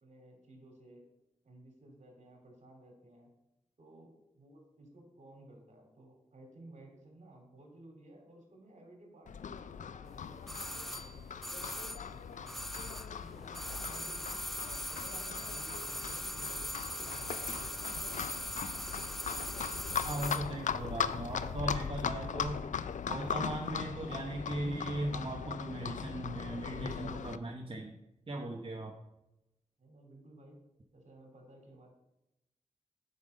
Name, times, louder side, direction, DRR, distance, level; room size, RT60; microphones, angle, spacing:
voice 1, 0.0-1.1 1.4-3.3 3.8-12.6 13.1-14.4 14.9-17.7 29.8-30.6 30.9-31.9, right 1 dB, 65° right, 1 dB, 2.9 m, -56 dB
Livestock farm animals working animals, 9.3-27.4, left 7 dB, 75° left, 0.4 m, -39 dB
sound 1, 10.5-13.2 13.5-20.5 20.7-20.8, equal, ahead, 0.5 m, -40 dB
voice 2, 20.0-22.6 23.1-27.9 28.3-28.9, right 1 dB, 45° right, 1 dB, 1.1 m, -38 dB
8.5 x 5.5 x 6.6 m, 0.90 s
cardioid pair, 65°, 13 cm